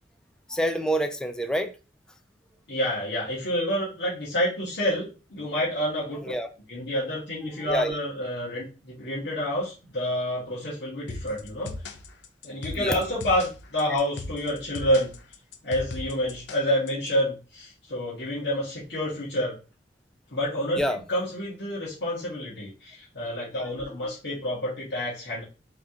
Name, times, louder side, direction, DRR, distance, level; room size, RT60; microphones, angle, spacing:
voice 1, 0.5-1.7 6.2-6.5 7.7-8.0 12.8-13.0 20.8-21.0, equal, 5° left, 6 dB, 0.5 m, -26 dB
voice 2, 2.7-6.2 6.7-11.7 12.4-15.1 15.6-19.6 20.3-20.8 21.1-25.4, equal, 70° left, -8 dB, 1.7 m, -28 dB
sound 1, 11.1-17.1, left 3 dB, 85° left, 0.7 m, -38 dB
3.7 x 2.9 x 3.7 m, 0.33 s
head